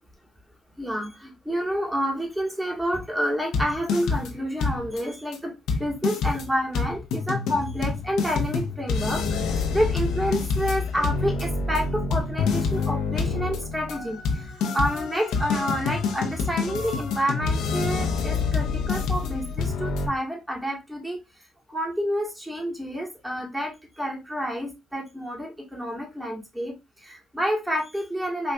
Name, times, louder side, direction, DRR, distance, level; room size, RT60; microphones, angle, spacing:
voice 1, 0.8-5.5 5.8-9.4 9.7-14.4 14.7-21.2 21.7-26.7 27.0-28.5, equal, 10° right, 1 dB, 1.3 m, -29 dB
sound 1, 3.5-4.3 4.6-5.0 5.3-5.4 5.7-20.1, left 4 dB, 75° left, 0.6 m, -27 dB
4.4 x 2.5 x 2.2 m, 0.23 s
supercardioid pair, 60°, 0 cm